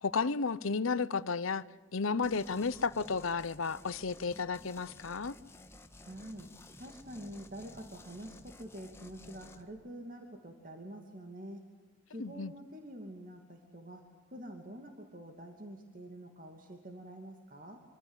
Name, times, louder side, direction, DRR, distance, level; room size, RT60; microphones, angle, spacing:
voice 1, 0.0-1.6 1.9-5.3 12.2-12.5, left 4 dB, 85° left, 0.8 m, -32 dB
sound 1, 2.2-9.6, left 2 dB, 15° left, 1.5 m, -54 dB
voice 2, 6.0-6.5 6.8-11.6 12.1-17.8, right 1 dB, 40° right, 2.6 m, -47 dB
26.0 x 25.0 x 8.2 m
head